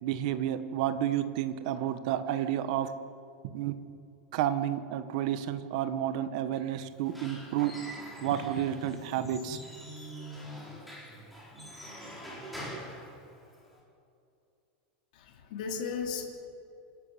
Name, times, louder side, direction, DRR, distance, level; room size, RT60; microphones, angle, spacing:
voice 1, 0.0-2.9 3.5-3.7 4.3-7.7 8.2-9.6, right 11 dB, 45° right, 11 dB, 1.5 m, -30 dB
Squeak / Wood, 6.9-13.8, equal, ahead, 4.4 m, -44 dB
voice 2, 15.1-16.2, left 6 dB, 55° left, 1 dB, 3.5 m, -35 dB
27.0 x 14.0 x 9.2 m, 2.5 s
supercardioid pair, 175°, 5 cm